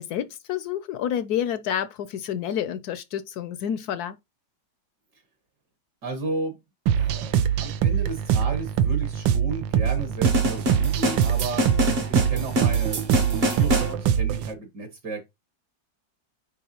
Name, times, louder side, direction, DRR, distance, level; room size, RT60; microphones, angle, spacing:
voice 1, 0.0-4.2, left 9 dB, 70° left, 0.9 m, -29 dB
voice 2, 6.0-6.6 6.9-11.9 12.3-15.3, right 2 dB, 65° right, 2.3 m, -34 dB
sound 1, 6.9-14.5, right 9 dB, 90° right, 1.4 m, -23 dB
sound 2, 10.2-13.9, equal, 40° right, 0.9 m, -26 dB
9.2 x 3.6 x 2.8 m
omnidirectional pair, 2.0 m